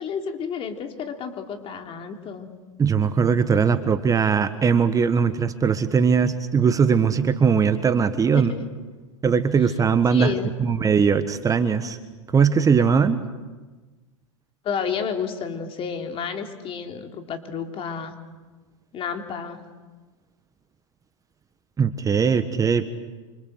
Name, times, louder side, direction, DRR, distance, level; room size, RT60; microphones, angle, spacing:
voice 1, 0.0-2.5 8.3-8.4 9.6-9.7 10.1-10.6 14.6-18.2 18.9-19.6, left 6 dB, 35° left, 4 dB, 3.5 m, -31 dB
voice 2, 2.8-8.5 9.2-12.0 12.3-13.2 21.8-22.9, right 6 dB, 20° right, 10 dB, 1.4 m, -20 dB
28.0 x 26.0 x 7.9 m, 1.3 s
hypercardioid pair, 105°, 17 cm